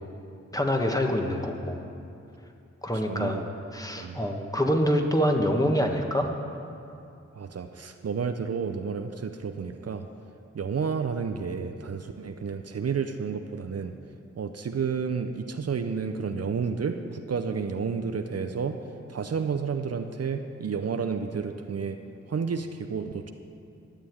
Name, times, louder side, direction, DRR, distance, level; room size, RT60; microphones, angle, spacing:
voice 1, 0.5-1.8 2.8-3.4 3.7-6.3, equal, 10° left, 2 dB, 1.5 m, -25 dB
voice 2, 3.1-3.4 4.0-4.2 7.3-10.1 10.5-13.9 14.4-18.8 19.1-22.0 22.3-23.3, right 6 dB, 55° right, 7 dB, 0.7 m, -31 dB
11.5 x 6.9 x 9.4 m, 2.6 s
cardioid pair, 60°, 30 cm